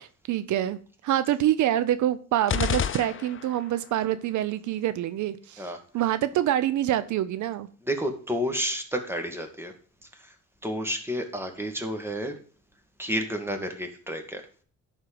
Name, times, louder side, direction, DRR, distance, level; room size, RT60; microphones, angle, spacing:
voice 1, 0.0-7.7, right 12 dB, 75° right, 0.7 m, -26 dB
sound 1, 2.5-3.8, left 8 dB, 45° left, 0.8 m, -29 dB
voice 2, 7.9-9.7 10.1-10.3 10.6-12.4 13.0-14.4, equal, 10° right, 2.2 m, -30 dB
11.0 x 4.6 x 7.7 m
cardioid pair, 90°, 30 cm